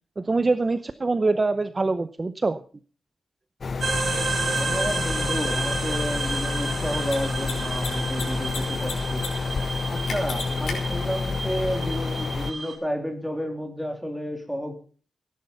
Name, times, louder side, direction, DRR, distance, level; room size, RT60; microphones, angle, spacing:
voice 1, 0.2-2.6 4.1-4.3, right 3 dB, 25° right, 12 dB, 0.6 m, -24 dB
sound 1, 3.6-12.5, left 4 dB, 45° left, 0.7 m, -29 dB
sound 2, 3.8-12.7, right 3 dB, 50° right, 7.6 m, -31 dB
voice 2, 4.4-9.6 9.9-14.8, equal, ahead, 4 dB, 3.1 m, -31 dB
Mechanisms, 4.5-4.6 7.0-7.2 7.4-7.5 7.8-8.6 8.8-9.3 9.5-9.6 10.1-10.7, left 5 dB, 75° left, 5.1 m, -33 dB
16.5 x 10.5 x 5.6 m, 0.41 s
wide cardioid pair, 150°, 0 cm